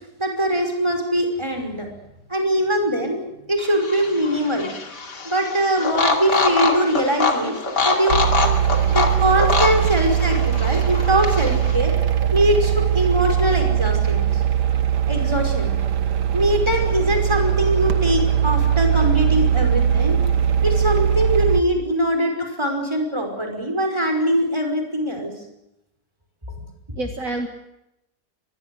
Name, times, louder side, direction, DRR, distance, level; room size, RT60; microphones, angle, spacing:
voice 1, 0.2-1.9 2.3-4.7 5.2-7.6 7.8-8.2 8.9-11.9 12.3-14.4 15.1-15.7 16.3-20.2 20.6-25.3, right 1 dB, 15° right, 3 dB, 5.6 m, -22 dB
sound 1, 3.6-11.8, left 4 dB, 90° left, 3.3 m, -24 dB
sound 2, 8.1-21.6, right 9 dB, 80° right, 1.9 m, -20 dB
voice 2, 26.9-27.5, right 3 dB, 55° right, 4 dB, 2.3 m, -30 dB
24.5 x 21.0 x 8.1 m, 0.86 s
omnidirectional pair, 1.8 m